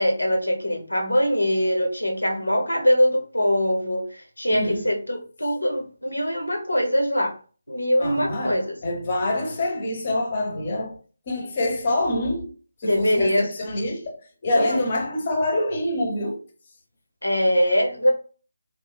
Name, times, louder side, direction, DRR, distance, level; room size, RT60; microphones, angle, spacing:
voice 1, 0.0-7.3 7.7-8.8 12.8-13.5 14.5-14.8 17.2-18.1, equal, 85° left, 0.8 m, -22 dB
voice 2, 4.5-4.9 8.0-11.0 11.3-12.5 12.8-16.4, left 1 dB, 35° left, 0.7 m, -26 dB
3.1 x 2.2 x 2.2 m
figure-of-eight pair, 155°, 0 cm